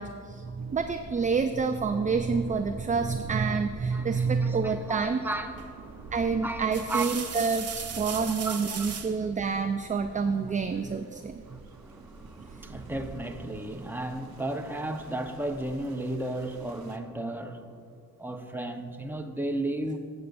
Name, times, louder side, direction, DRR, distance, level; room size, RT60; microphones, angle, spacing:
voice 1, 0.0-5.2 6.1-11.6, right 5 dB, 20° right, 7 dB, 0.4 m, -28 dB
sound 1, 0.6-17.0, right 4 dB, 65° right, 0.9 m, -46 dB
voice 2, 3.9-7.3 8.0-8.9 11.5-17.8 18.2-20.0, right 1 dB, 5° right, 5 dB, 1.0 m, -35 dB
sound 2, 5.6-5.9 6.5-9.2 10.7-11.3, right 6 dB, 40° right, 0.8 m, -38 dB
16.0 x 6.7 x 2.6 m, 2.3 s
supercardioid pair, 40°, 39 cm